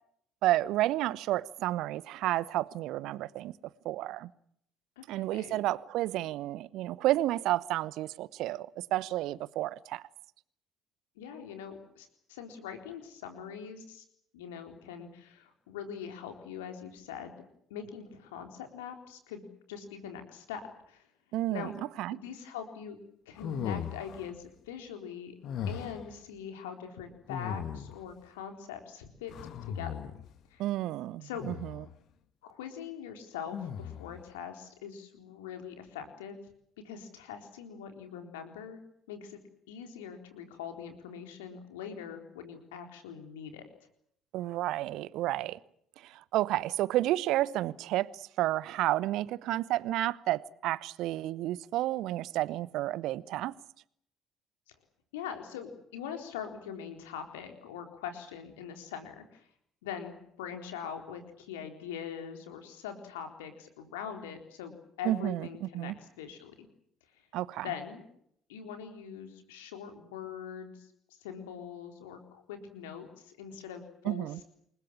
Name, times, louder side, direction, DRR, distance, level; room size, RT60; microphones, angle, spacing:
voice 1, 0.4-3.5 3.8-4.3 5.1-10.0 21.3-21.7 22.0-22.2 30.6-31.8 44.3-45.6 46.0-53.5 65.0-66.0 67.3-67.7 74.0-74.4, right 15 dB, 55° right, 1.0 m, -31 dB
voice 2, 5.0-5.6 6.2-6.3 11.2-14.0 14.3-17.4 17.7-21.1 21.5-21.7 22.1-23.0 23.3-25.4 25.7-29.3 29.7-29.9 30.5-30.6 31.2-31.4 32.4-36.4 36.8-38.8 39.1-39.4 39.7-43.6 55.1-59.5 59.8-66.7 67.6-68.1 68.5-70.9 71.2-74.4, left 8 dB, 70° left, 4.0 m, -42 dB
sound 1, 23.4-24.3 25.4-26.1 27.3-28.1 29.3-30.3 31.4-31.9 33.5-34.2, left 8 dB, 55° left, 1.7 m, -38 dB
28.5 x 22.0 x 7.3 m
figure-of-eight pair, 50°, 0 cm